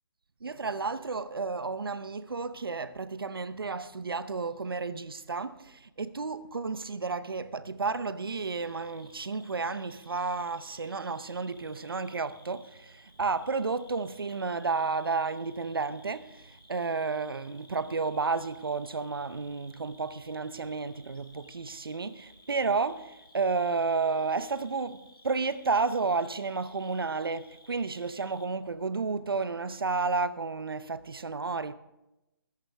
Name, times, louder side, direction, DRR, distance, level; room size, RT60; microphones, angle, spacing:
voice 1, 0.4-31.7, right 4 dB, 80° right, 0.8 m, -32 dB
Cricket, 8.5-28.5, left 2 dB, 85° left, 2.7 m, -58 dB
14.0 x 13.5 x 3.4 m
figure-of-eight pair, 150°, 12 cm